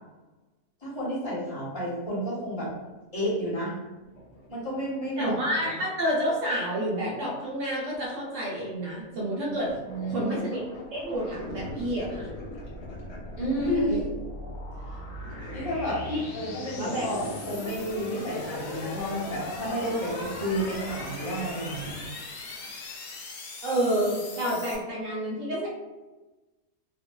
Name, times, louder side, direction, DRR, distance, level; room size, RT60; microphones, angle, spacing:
voice 1, 0.8-2.7 3.1-3.8 4.5-5.4 9.9-10.3 13.4-14.0 15.5-21.9, equal, 20° left, -9 dB, 0.9 m, -31 dB
sound 1, 3.2-3.3 3.8-4.8 6.0-6.5 7.9-8.1 8.7-9.0 9.5-14.6 15.2-16.4 16.7-22.1, left 1 dB, 40° left, 0.5 m, -43 dB
voice 2, 5.2-9.7 10.1-10.6 10.9-12.3 13.9-14.0 16.1-16.2 16.8-17.1 23.6-25.7, equal, 65° right, -4 dB, 1.0 m, -29 dB
sound 2, 11.3-24.8, left 2 dB, 75° left, 1.0 m, -40 dB
2.4 x 2.4 x 2.2 m, 1.1 s
omnidirectional pair, 1.5 m